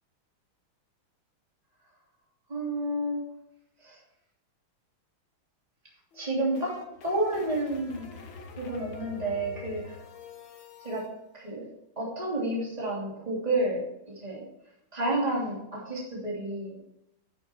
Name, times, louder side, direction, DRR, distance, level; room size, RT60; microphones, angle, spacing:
voice 1, 2.5-3.2 3.8-4.0 6.1-6.7 7.0-8.2 8.6-10.0 10.8-11.0 11.3-11.7 12.0-14.4 14.9-16.8, right 1 dB, 20° right, -4 dB, 3.0 m, -30 dB
sound 1, 6.1-11.1, left 5 dB, 70° left, 2.2 m, -45 dB
11.5 x 7.1 x 4.5 m, 0.85 s
omnidirectional pair, 2.2 m